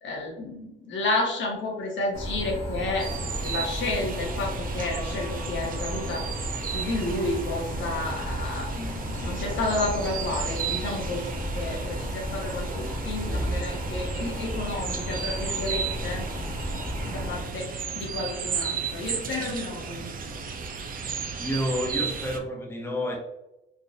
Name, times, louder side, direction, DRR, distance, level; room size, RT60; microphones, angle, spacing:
voice 1, 0.0-3.1 3.4-6.3 6.6-16.2 17.0-20.2, left 2 dB, 70° left, -1 dB, 1.3 m, -31 dB
sound 1, 2.1-17.4, equal, 30° left, 1.3 m, -33 dB
sound 2, 3.0-22.4, right 6 dB, 45° right, 0.5 m, -34 dB
voice 2, 21.4-23.2, equal, 10° left, 1 dB, 0.7 m, -29 dB
3.8 x 2.5 x 2.6 m, 0.89 s
cardioid pair, 90°, 20 cm